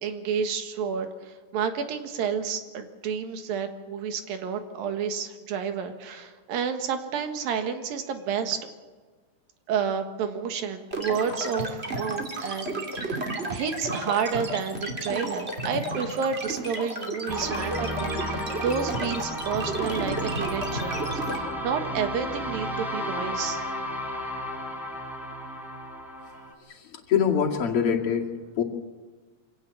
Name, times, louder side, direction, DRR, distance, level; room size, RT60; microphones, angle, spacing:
voice 1, 0.0-8.7 9.7-13.2 13.5-23.6, right 7 dB, 80° right, 7 dB, 3.4 m, -30 dB
sound 1, 10.9-21.4, right 1 dB, 20° right, 2.5 m, -32 dB
sound 2, 17.3-26.5, equal, ahead, 3.4 m, -33 dB
voice 2, 26.7-28.3 28.6-28.7, left 7 dB, 45° left, 0 dB, 3.0 m, -24 dB
25.5 x 16.5 x 8.5 m, 1.4 s
omnidirectional pair, 4.0 m